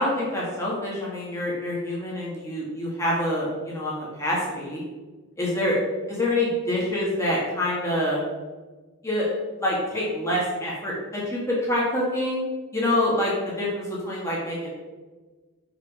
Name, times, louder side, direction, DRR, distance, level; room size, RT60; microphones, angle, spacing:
voice 1, 0.0-4.8 5.4-5.8 6.1-8.2 9.0-9.3 9.6-12.4 12.7-14.7, left 1 dB, 15° left, -6 dB, 1.6 m, -26 dB
6.0 x 5.1 x 4.9 m, 1.3 s
head